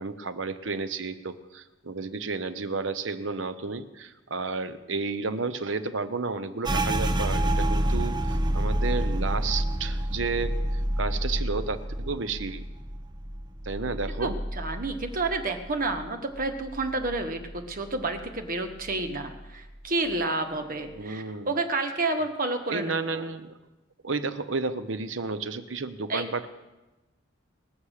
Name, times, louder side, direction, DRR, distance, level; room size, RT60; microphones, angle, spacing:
voice 1, 0.0-12.6 13.6-14.4 20.9-21.5 22.7-23.6 24.0-26.5, right 4 dB, 75° right, 11 dB, 0.9 m, -32 dB
sound 1, 6.6-16.1 16.3-17.6 17.9-18.4 18.8-19.4, right 1 dB, 25° right, 0.9 m, -29 dB
voice 2, 14.2-23.3 26.1-26.2, right 2 dB, 45° right, 5 dB, 1.5 m, -30 dB
20.0 x 7.2 x 6.6 m, 1.1 s
head